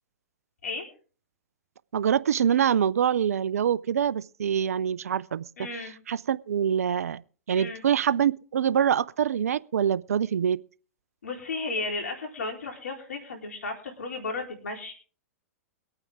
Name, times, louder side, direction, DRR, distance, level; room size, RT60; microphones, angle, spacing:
voice 1, 1.9-5.5 6.1-7.2 7.5-10.6, right 8 dB, 80° right, 0.5 m, -25 dB
voice 2, 5.6-6.0 7.5-7.8 11.2-14.9, left 3 dB, 80° left, 4.0 m, -34 dB
23.0 x 9.0 x 3.6 m
hypercardioid pair, 110°, 8 cm